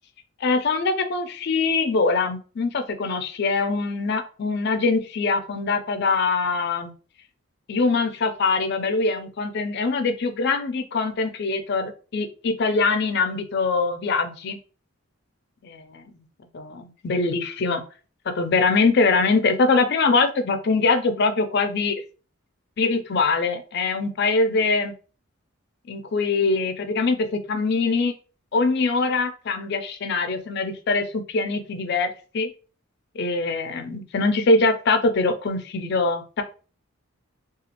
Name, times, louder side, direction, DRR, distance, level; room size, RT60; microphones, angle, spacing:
voice 1, 0.4-6.9 7.7-14.6 15.6-16.1 16.5-17.8 18.3-22.0 22.8-24.9 25.9-28.1 28.5-32.5 33.2-36.4, left 3 dB, 50° left, 8 dB, 0.4 m, -23 dB
2.9 x 2.3 x 2.9 m, 0.37 s
head